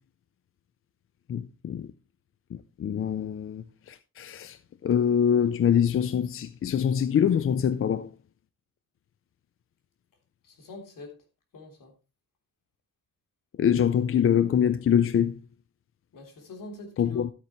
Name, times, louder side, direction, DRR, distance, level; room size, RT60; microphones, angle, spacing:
voice 1, 1.3-1.9 2.5-8.1 13.6-15.4 17.0-17.3, left 8 dB, 40° left, 0.4 m, -24 dB
voice 2, 10.4-11.1 11.5-11.9 16.1-17.2, left 2 dB, 60° left, 3.3 m, -43 dB
13.0 x 8.3 x 3.0 m
wide cardioid pair, 160°, 36 cm